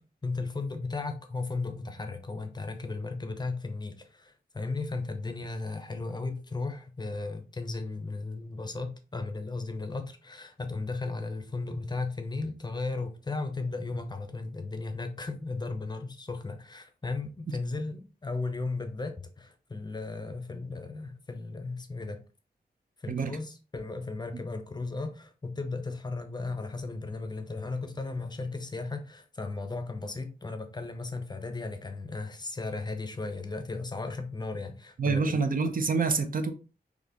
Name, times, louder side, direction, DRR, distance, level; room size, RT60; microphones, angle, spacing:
voice 1, 0.0-22.2 23.0-35.4, left 3 dB, 25° left, 0.6 m, -35 dB
voice 2, 35.0-36.5, right 4 dB, 55° right, 0.6 m, -27 dB
4.2 x 2.9 x 2.9 m
wide cardioid pair, 140°, 17 cm